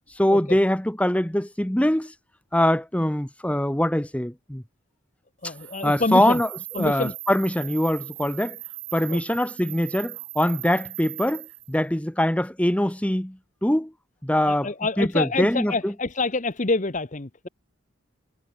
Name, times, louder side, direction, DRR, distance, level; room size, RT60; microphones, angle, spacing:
voice 1, 0.1-2.1 2.5-4.6 5.4-5.5 5.8-6.5 6.8-8.6 8.9-13.9 14.2-14.7 15.0-15.9, left 1 dB, 5° left, 0.9 m, -23 dB
voice 2, 5.4-6.4 6.7-7.1 9.1-9.2 14.4-17.5, left 3 dB, 35° left, 1.0 m, -27 dB
sound 1, 5.4-11.8, right 17 dB, 60° right, 3.4 m, -39 dB
head